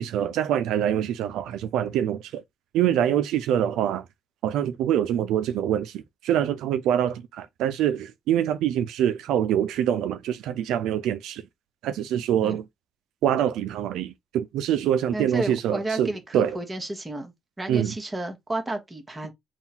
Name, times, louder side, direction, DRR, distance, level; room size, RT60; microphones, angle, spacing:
voice 1, 0.0-2.4 2.7-4.0 4.4-11.4 11.8-12.7 13.2-16.6 17.7-17.9, right 10 dB, 90° right, 0.4 m, -25 dB
voice 2, 15.1-19.3, right 1 dB, 20° right, 1.3 m, -32 dB
3.7 x 2.3 x 4.2 m
cardioid pair, 90°, 0 cm